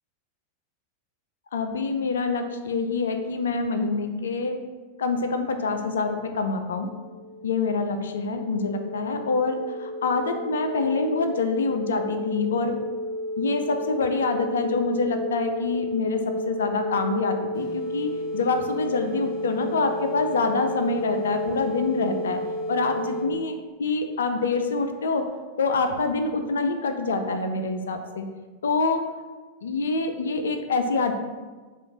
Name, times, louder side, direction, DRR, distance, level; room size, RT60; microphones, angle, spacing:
voice 1, 1.5-4.6 5.0-6.9 7.4-12.8 13.4-22.4 22.7-25.3 25.6-28.3 28.6-29.0 29.6-31.1, left 4 dB, 65° left, 7 dB, 0.3 m, -26 dB
sound 1, 6.4-23.3, equal, 45° left, 1.1 m, -32 dB
sound 2, 17.5-23.4, right 2 dB, 30° left, 0.8 m, -46 dB
4.9 x 2.4 x 2.9 m, 1.3 s
figure-of-eight pair, 90°, 0 cm